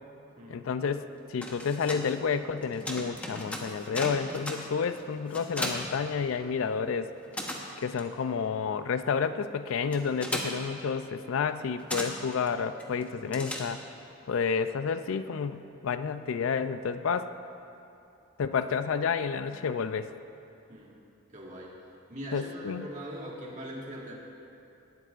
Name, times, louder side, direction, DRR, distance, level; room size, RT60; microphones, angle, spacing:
voice 1, 0.5-7.1 7.8-13.8 14.3-17.3 18.4-20.1 22.3-22.9, left 6 dB, 70° left, 11 dB, 0.4 m, -30 dB
sound 1, 1.2-6.8 7.0-14.1, left 1 dB, 5° left, 0.9 m, -38 dB
voice 2, 21.3-21.7 22.1-24.1, equal, 35° right, -4 dB, 1.7 m, -41 dB
18.0 x 12.0 x 2.5 m, 2.8 s
head